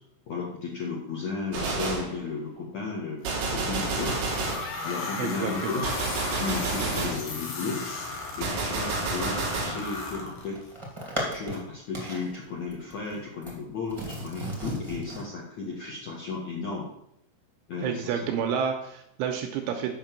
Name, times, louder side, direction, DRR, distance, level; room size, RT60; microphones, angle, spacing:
voice 1, 0.3-4.2 4.8-6.0 6.4-7.8 8.4-10.6 11.2-16.9 17.7-18.3, left 4 dB, 75° left, -4 dB, 1.6 m, -34 dB
Gunshot gunfire, 1.5-2.2 3.2-4.7 5.8-7.3 8.4-9.8, right 3 dB, 55° right, 2.7 m, -30 dB
sound 1, 3.2-10.8, left 3 dB, 60° left, 3.1 m, -36 dB
voice 2, 5.2-5.7 6.8-7.0 17.8-19.9, right 7 dB, 85° right, 4 dB, 3.2 m, -30 dB
sound 2, 10.0-11.6 11.9-12.3 12.7-13.6 13.9-15.2, right 1 dB, 35° right, 0.4 m, -35 dB
8.1 x 5.9 x 7.6 m, 0.77 s
omnidirectional pair, 5.9 m